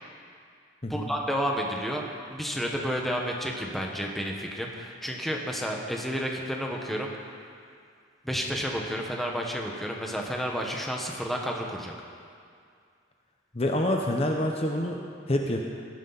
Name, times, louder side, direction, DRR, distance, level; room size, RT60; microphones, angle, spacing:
voice 1, 0.9-2.0 2.3-7.1 8.2-11.9, equal, ahead, 0 dB, 1.2 m, -31 dB
voice 2, 13.5-15.6, left 1 dB, 30° left, 1 dB, 0.9 m, -27 dB
17.5 x 12.0 x 4.1 m, 2.2 s
head